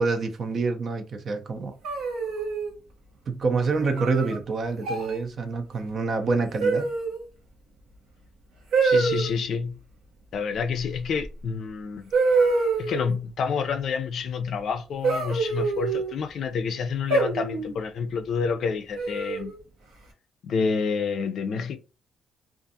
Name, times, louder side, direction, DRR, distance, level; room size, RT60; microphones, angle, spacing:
voice 1, 0.0-1.8 3.3-6.9, right 4 dB, 55° right, 0.5 m, -27 dB
sound 1, 1.8-2.7 4.0-4.4 4.8-5.2 6.6-7.2 8.7-9.3 11.2-11.3 12.1-13.1 15.0-16.1 17.1-17.7 19.0-19.5, right 4 dB, 85° right, 0.8 m, -25 dB
voice 2, 8.8-9.8 10.3-12.1 12.8-19.5 20.4-21.8, left 5 dB, 65° left, 0.4 m, -28 dB
2.5 x 2.4 x 2.6 m
cardioid pair, 90°, 0 cm